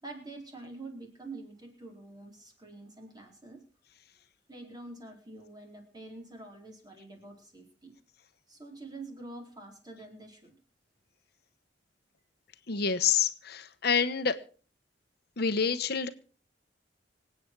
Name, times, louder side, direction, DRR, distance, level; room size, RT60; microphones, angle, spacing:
voice 1, 0.0-3.6 4.5-7.9 8.5-10.5, right 2 dB, 25° right, 2 dB, 4.5 m, -46 dB
voice 2, 12.7-14.4 15.4-16.1, left 6 dB, 65° left, 11 dB, 1.1 m, -27 dB
26.0 x 8.8 x 4.7 m, 0.40 s
head